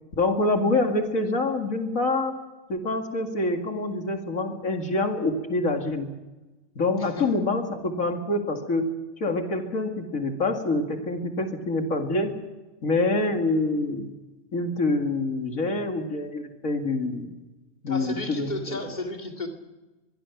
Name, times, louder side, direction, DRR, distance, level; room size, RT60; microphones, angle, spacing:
voice 1, 0.2-2.3 2.7-6.1 6.8-12.3 12.8-14.1 14.5-17.3 17.8-18.8, left 2 dB, 75° left, 4 dB, 2.6 m, -26 dB
voice 2, 17.9-19.5, left 2 dB, 30° left, 2 dB, 2.6 m, -33 dB
23.5 x 23.0 x 5.9 m, 1.1 s
omnidirectional pair, 1.4 m